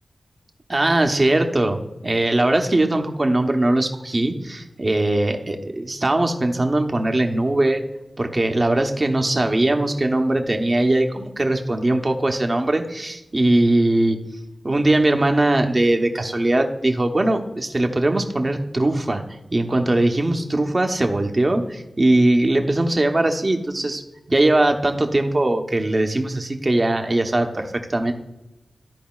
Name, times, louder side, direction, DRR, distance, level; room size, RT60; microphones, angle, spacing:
voice 1, 0.7-7.8 8.2-14.2 14.6-19.2 19.5-24.0 24.3-28.1, right 1 dB, 35° right, 4 dB, 1.0 m, -20 dB
13.5 x 4.9 x 2.4 m, 0.99 s
wide cardioid pair, 90°, 0 cm